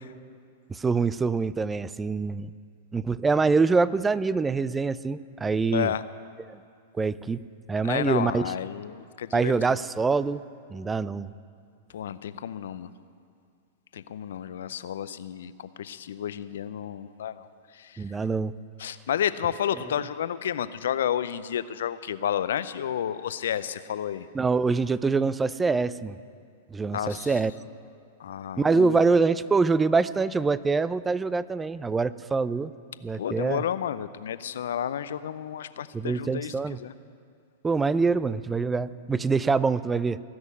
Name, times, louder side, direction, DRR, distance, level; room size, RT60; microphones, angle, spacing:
voice 1, 0.7-2.5 2.9-5.9 6.5-6.6 7.0-7.4 7.7-8.5 9.3-10.4 10.7-11.3 18.0-18.5 24.3-26.2 26.7-27.5 28.6-32.7 33.0-33.6 35.9-36.8 37.6-40.2, right 4 dB, 15° right, 17 dB, 0.4 m, -25 dB
voice 2, 5.7-6.0 7.8-9.5 11.9-12.9 13.9-17.5 17.8-18.0 18.8-24.3 26.9-27.3 28.2-29.0 33.2-36.5 36.8-36.9, left 9 dB, 70° left, 14 dB, 0.5 m, -31 dB
18.5 x 6.3 x 9.4 m, 2.3 s
hypercardioid pair, 105°, 0 cm